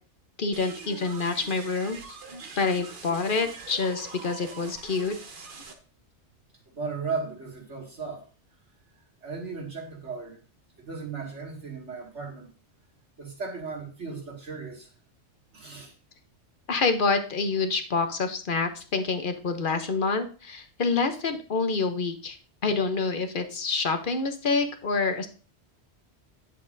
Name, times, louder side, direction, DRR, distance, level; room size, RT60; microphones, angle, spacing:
voice 1, 0.4-2.0 2.6-5.1 16.7-22.4 22.6-25.3, left 4 dB, 50° left, 7 dB, 0.9 m, -27 dB
sound 1, 0.5-5.7, right 4 dB, 50° right, 1.1 m, -43 dB
voice 2, 6.7-8.3 9.2-10.4 10.8-12.5 13.2-14.9 15.5-15.9, right 4 dB, 90° right, -1 dB, 2.4 m, -36 dB
9.4 x 7.5 x 2.6 m, 0.37 s
omnidirectional pair, 1.2 m